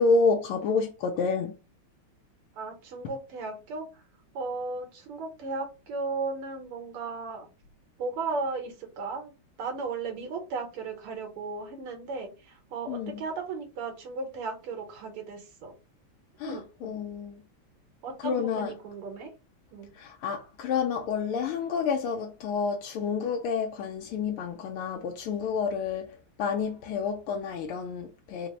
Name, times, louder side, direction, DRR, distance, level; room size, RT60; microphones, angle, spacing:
voice 1, 0.0-1.5 12.9-13.2 16.4-17.4 18.2-18.7 20.0-26.1 26.4-28.5, left 5 dB, 80° left, 1.5 m, -29 dB
voice 2, 2.6-3.9 4.3-7.5 8.0-9.3 9.6-15.7 16.4-16.9 18.0-19.3 19.7-19.9, right 4 dB, 80° right, 2.0 m, -35 dB
4.3 x 2.0 x 4.3 m
omnidirectional pair, 2.4 m